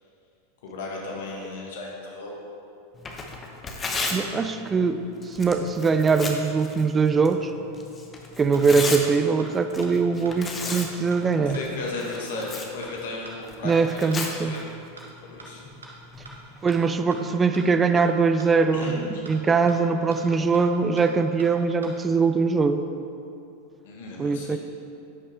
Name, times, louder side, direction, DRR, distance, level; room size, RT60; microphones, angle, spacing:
voice 1, 0.6-2.3 11.4-14.6 15.2-15.6 18.7-19.2 23.8-24.6, left 3 dB, 60° left, -1 dB, 1.4 m, -35 dB
Tearing, 2.9-16.8, left 3 dB, 20° left, 0.9 m, -36 dB
voice 2, 4.1-7.5 8.4-11.6 13.6-14.6 16.6-22.8 24.2-24.6, right 4 dB, 20° right, 9 dB, 0.4 m, -22 dB
sound 1, 8.2-8.3 8.5-8.6 9.0-9.1 9.4-9.5 9.8-9.9 10.3-10.4 10.7-10.8 11.1-11.2 11.5-11.6 12.0-12.1 12.4-12.5 12.8-12.9 13.3-13.4 13.7-13.8 14.1-14.2 14.5-14.6 15.0-15.1 15.4-15.5 15.8-15.9 16.3-16.4 16.7-16.8 17.1-17.2 17.5-17.6 18.0-18.1 18.4-18.5 18.8-18.9 19.3-19.4 19.7-19.8 20.1-20.2 20.5-20.6 21.0-21.1 21.4-21.5 21.8-21.9, right 3 dB, 70° right, 1.1 m, -43 dB
9.8 x 5.6 x 3.3 m, 2.7 s
figure-of-eight pair, 85°, 0 cm